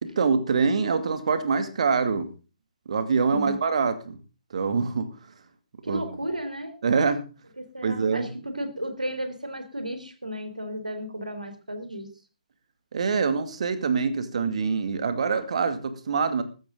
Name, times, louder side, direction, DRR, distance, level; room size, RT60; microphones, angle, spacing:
voice 1, 0.0-2.3 2.9-4.2 4.5-5.1 5.9-6.0 6.8-7.2 7.8-8.3 12.9-16.4, right 5 dB, 55° right, 10 dB, 2.5 m, -25 dB
voice 2, 3.3-3.7 5.8-6.8 7.6-12.1, equal, 85° right, 8 dB, 3.6 m, -34 dB
15.0 x 13.5 x 3.9 m, 0.34 s
figure-of-eight pair, 130°, 4 cm